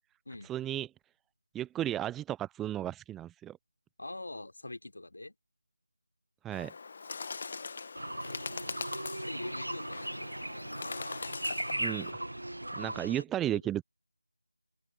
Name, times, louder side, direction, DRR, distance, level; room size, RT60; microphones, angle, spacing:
voice 1, 0.5-0.9 1.5-3.6 6.4-6.7 11.7-12.1 12.8-13.8, right 12 dB, 5° right, 0.5 m, -34 dB
voice 2, 4.0-5.4 8.3-8.9 9.2-10.8 13.5-13.7, left 2 dB, 60° left, 3.7 m, -45 dB
Bird, 6.5-12.1, left 4 dB, 30° left, 1.6 m, -42 dB
sound 1, 8.0-13.2, right 1 dB, 75° right, 1.0 m, -38 dB
open air
figure-of-eight pair, 165°, 0 cm